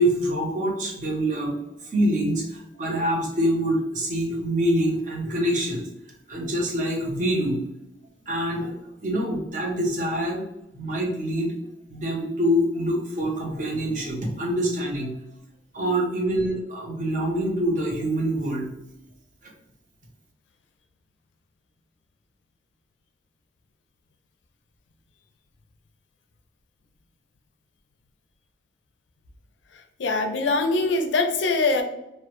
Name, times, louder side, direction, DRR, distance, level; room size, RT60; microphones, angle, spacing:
voice 1, 0.0-1.5 1.8-5.9 6.3-7.6 8.3-10.5 10.7-11.5 11.9-15.2 15.7-18.7, equal, 45° right, -1 dB, 0.6 m, -25 dB
voice 2, 30.0-31.8, left 3 dB, 80° left, 5 dB, 0.4 m, -22 dB
2.1 x 2.0 x 2.9 m, 0.85 s
head